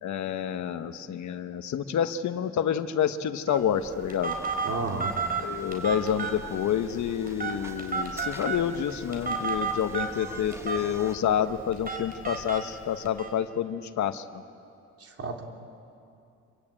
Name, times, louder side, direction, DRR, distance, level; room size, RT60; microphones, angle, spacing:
voice 1, 0.0-4.4 5.4-14.4, left 9 dB, 70° left, 9 dB, 1.2 m, -28 dB
Telephone, 3.5-13.3, right 4 dB, 30° right, 4.4 m, -33 dB
sound 1, 4.2-11.2, right 1 dB, 10° right, 1.5 m, -47 dB
voice 2, 4.6-5.2 15.0-15.5, right 4 dB, 50° right, 2 dB, 3.5 m, -32 dB
27.0 x 23.5 x 8.8 m, 2.5 s
cardioid pair, 90°, 30 cm